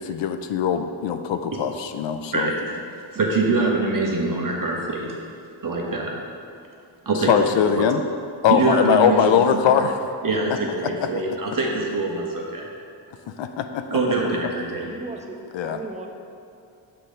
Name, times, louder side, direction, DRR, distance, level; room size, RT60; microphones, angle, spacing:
voice 1, 0.0-2.5 7.3-8.0 8.4-9.9 13.4-14.0 15.5-15.8, left 7 dB, 70° left, 8 dB, 0.5 m, -21 dB
voice 2, 2.3-2.7 3.1-5.1 5.6-6.1 7.0-7.7 8.5-9.7 10.2-12.7 13.9-14.9, right 3 dB, 45° right, -1 dB, 1.3 m, -24 dB
voice 3, 14.9-16.1, right 2 dB, 15° right, 1 dB, 0.9 m, -36 dB
6.5 x 4.0 x 5.1 m, 2.4 s
cardioid pair, 60°, 47 cm